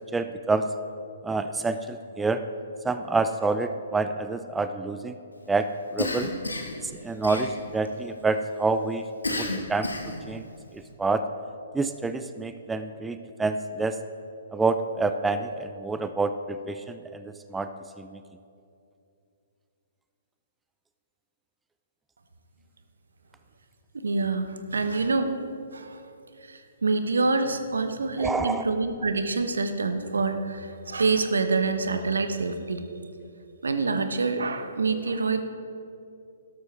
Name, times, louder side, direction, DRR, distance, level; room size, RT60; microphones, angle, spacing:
voice 1, 0.1-0.7 1.2-2.4 2.8-5.1 5.5-6.3 6.8-9.0 9.3-9.9 10.3-10.4 10.7-11.2 11.7-14.0 14.5-17.7 18.0-18.2 28.2-28.6, right 3 dB, 10° right, 10 dB, 0.4 m, -27 dB
Cough, 6.0-6.8 7.2-7.9 9.2-10.2, left 2 dB, 85° left, 1.5 m, -31 dB
voice 2, 23.9-25.4 25.7-26.0 26.4-32.9 33.6-35.4, right 3 dB, 75° right, 8 dB, 0.9 m, -26 dB
12.5 x 12.0 x 3.3 m, 2.6 s
figure-of-eight pair, 125°, 0 cm